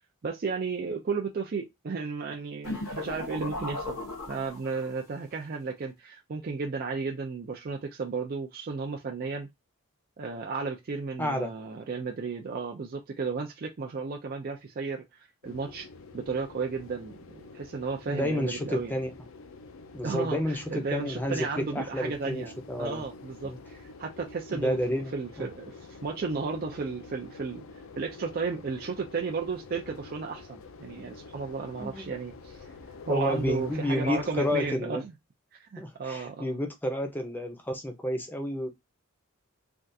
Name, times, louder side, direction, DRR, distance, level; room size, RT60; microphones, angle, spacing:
voice 1, 0.2-4.0 4.3-9.5 10.2-15.9 16.1-18.9 20.0-27.6 28.0-32.7 33.1-35.1 35.5-36.6, right 4 dB, 45° right, 0.4 m, -34 dB
sound 1, 2.6-5.0, left 2 dB, 90° left, 1.3 m, -36 dB
voice 2, 11.2-11.5 18.1-19.1 19.9-21.4 21.7-23.0 23.4-23.6 24.5-25.1 25.4-25.5 31.8-32.1 33.1-35.0 35.8-38.7, left 1 dB, 10° left, 0.6 m, -30 dB
sound 2, 15.4-34.8, left 3 dB, 65° left, 0.4 m, -47 dB
3.4 x 2.4 x 2.6 m
head